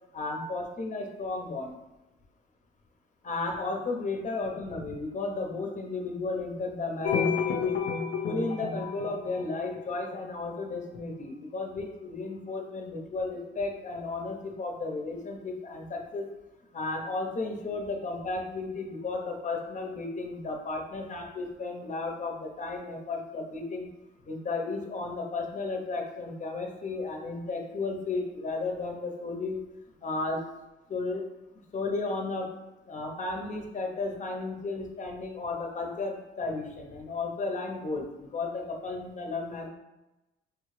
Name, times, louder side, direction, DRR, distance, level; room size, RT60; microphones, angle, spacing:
voice 1, 0.1-1.8 3.2-7.8 8.2-16.3 16.7-23.9 24.3-29.6 30.0-30.4 30.9-31.3 31.7-32.5 32.9-39.7, left 3 dB, 40° left, 2 dB, 0.9 m, -34 dB
sound 1, 7.0-10.2, left 6 dB, 80° left, 0.6 m, -30 dB
4.8 x 2.4 x 3.2 m, 1.0 s
cardioid pair, 90°, 20 cm